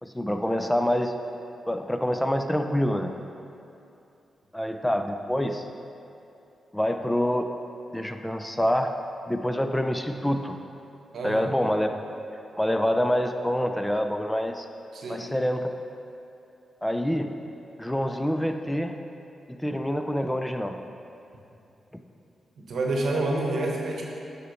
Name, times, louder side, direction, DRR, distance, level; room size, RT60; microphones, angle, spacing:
voice 1, 0.0-1.1 1.7-3.1 4.5-5.6 6.7-7.5 7.9-8.9 9.3-10.6 11.2-11.9 12.6-14.6 15.1-15.7 16.8-17.3 17.8-18.9 19.6-20.8, equal, 10° left, 6 dB, 0.4 m, -26 dB
voice 2, 11.1-11.6 14.9-15.2 22.6-24.0, right 2 dB, 70° right, -1 dB, 0.9 m, -28 dB
6.3 x 4.3 x 4.0 m, 2.7 s
supercardioid pair, 40°, 0 cm